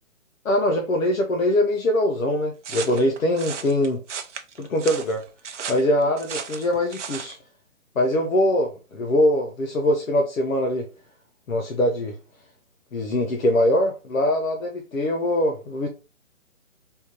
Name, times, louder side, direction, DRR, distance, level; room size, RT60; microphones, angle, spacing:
voice 1, 0.4-4.0 4.6-5.2 5.7-7.4 8.0-10.9 11.5-12.1 12.9-15.9, left 1 dB, 80° left, 0.9 m, -22 dB
sound 1, 2.6-7.4, right 7 dB, 60° right, 0.6 m, -35 dB
3.5 x 2.8 x 2.9 m
hypercardioid pair, 150°, 41 cm